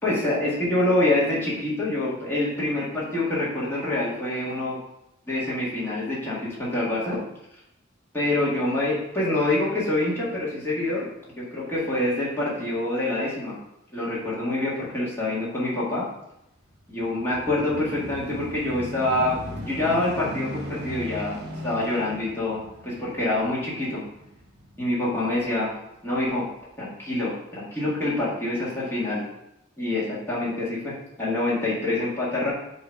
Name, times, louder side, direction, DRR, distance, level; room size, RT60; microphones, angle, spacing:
voice 1, 0.0-4.8 5.3-7.2 8.1-11.1 11.4-13.5 13.9-16.0 16.9-19.4 19.6-21.4 21.6-24.0 24.8-25.7 26.0-26.4 26.8-29.2 29.8-32.5, left 2 dB, 10° left, -8 dB, 2.1 m, -26 dB
sound 1, 16.7-25.5 26.2-26.3, equal, 50° right, 1.2 m, -38 dB
7.2 x 3.1 x 5.3 m, 0.84 s
head